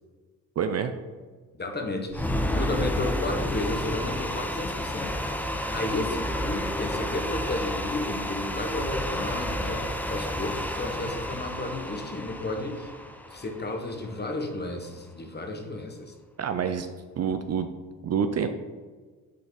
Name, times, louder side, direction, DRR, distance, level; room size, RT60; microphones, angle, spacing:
voice 1, 0.6-0.9 16.4-16.9 17.2-17.7 18.0-18.5, right 7 dB, 45° right, 8 dB, 0.6 m, -27 dB
voice 2, 1.5-12.9 13.3-16.1, left 2 dB, 25° left, 4 dB, 1.3 m, -33 dB
sound 1, 2.1-14.3, equal, 5° left, 0.8 m, -31 dB
8.4 x 4.2 x 4.0 m, 1.4 s
supercardioid pair, 65°, 37 cm